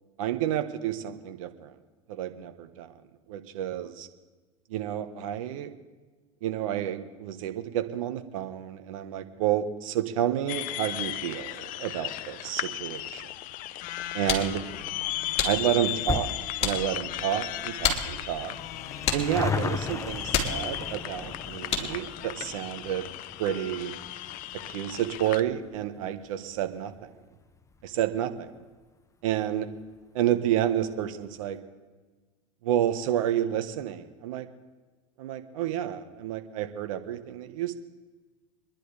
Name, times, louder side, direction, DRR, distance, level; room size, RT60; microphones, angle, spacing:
voice 1, 0.2-1.7 2.1-3.0 3.3-4.1 4.7-5.7 6.4-13.3 14.1-14.6 15.4-16.3 16.6-18.5 19.1-23.1 23.4-23.9 24.7-26.9 27.8-28.5 29.2-29.7 30.1-31.6 32.6-34.5 35.2-37.7, right 11 dB, 70° right, 8 dB, 1.4 m, -30 dB
sound 1, 10.5-25.4, left 15 dB, 50° left, 0.7 m, -36 dB
sound 2, 13.9-22.1, left 5 dB, 35° left, 3.2 m, -33 dB
sound 3, 15.3-28.1 28.4-28.5 29.3-29.4 29.6-29.7 30.0-30.1, left 4 dB, 15° left, 0.9 m, -38 dB
26.5 x 10.5 x 3.4 m, 1.3 s
hypercardioid pair, 85°, 18 cm